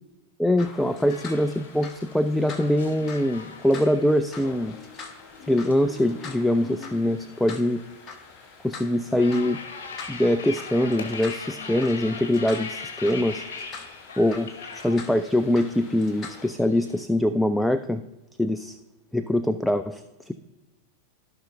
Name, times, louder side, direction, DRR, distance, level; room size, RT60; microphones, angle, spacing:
voice 1, 0.4-4.7 5.5-7.8 8.6-9.6 10.1-13.4 14.2-18.0 18.4-18.8 19.1-20.3, left 1 dB, 5° left, 11 dB, 0.3 m, -23 dB
sound 1, 0.6-16.5, left 5 dB, 25° left, 1.0 m, -44 dB
sound 2, 1.1-17.0, left 4 dB, 60° left, 1.2 m, -42 dB
15.0 x 5.4 x 2.6 m, 1.1 s
figure-of-eight pair, 90°, 0 cm